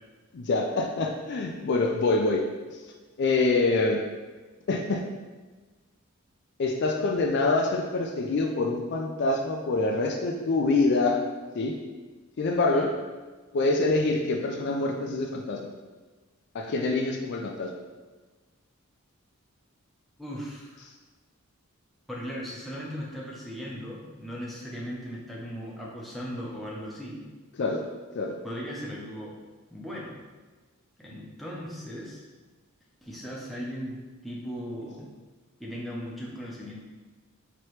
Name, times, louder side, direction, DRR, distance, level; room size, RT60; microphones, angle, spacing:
voice 1, 0.3-2.4 3.2-4.0 4.7-5.0 6.6-11.2 11.5-11.8 12.4-12.9 13.5-15.7 16.5-17.7 27.6-27.8 28.1-28.4, left 3 dB, 50° left, 2 dB, 0.4 m, -25 dB
voice 2, 20.2-20.8 22.1-27.2 28.4-29.4 29.7-30.2 31.0-32.2 33.0-35.1 35.6-36.8, equal, ahead, -5 dB, 0.6 m, -37 dB
4.4 x 3.0 x 3.1 m, 1.3 s
head